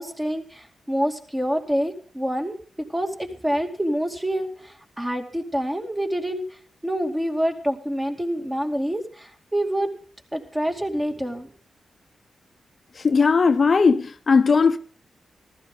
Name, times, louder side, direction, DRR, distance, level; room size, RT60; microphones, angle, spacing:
voice 1, 0.0-6.4 6.8-9.9 10.3-11.5, equal, 20° right, 2.4 m, -27 dB
voice 2, 13.0-14.8, left 5 dB, 50° left, 0.7 m, -18 dB
14.5 x 12.5 x 3.8 m
supercardioid pair, 50°, 0 cm